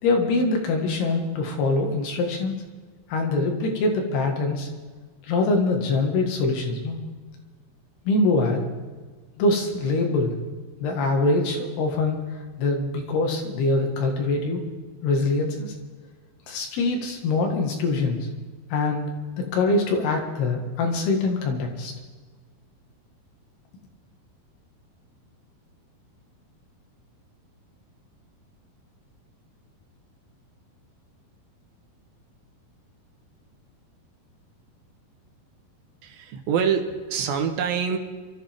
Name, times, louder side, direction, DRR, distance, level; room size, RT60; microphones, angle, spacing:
voice 1, 0.0-2.6 3.1-4.7 5.2-7.0 8.1-8.7 9.4-10.3 10.8-12.2 12.6-14.7 15.0-15.7 16.5-18.3 18.7-19.1 19.4-21.9, left 3 dB, 85° left, 2 dB, 3.8 m, -24 dB
voice 2, 36.0-38.0, right 7 dB, 75° right, 5 dB, 2.7 m, -25 dB
26.0 x 13.5 x 3.6 m, 1.4 s
omnidirectional pair, 4.5 m